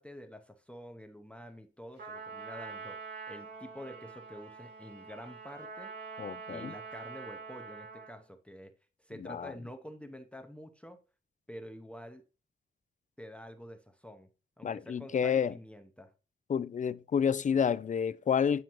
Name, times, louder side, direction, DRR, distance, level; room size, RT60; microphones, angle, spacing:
voice 1, 0.0-3.0 3.3-5.9 6.5-8.7 9.0-11.0 11.5-12.2 13.2-14.3 14.6-16.1, equal, 5° left, 0.7 m, -48 dB
Trumpet, 2.0-8.2, right 5 dB, 60° right, 3.3 m, -45 dB
voice 2, 6.2-6.7 9.2-9.5 14.6-15.5 16.5-18.6, left 7 dB, 40° left, 0.4 m, -29 dB
9.3 x 5.0 x 3.0 m
wide cardioid pair, 105°, 20 cm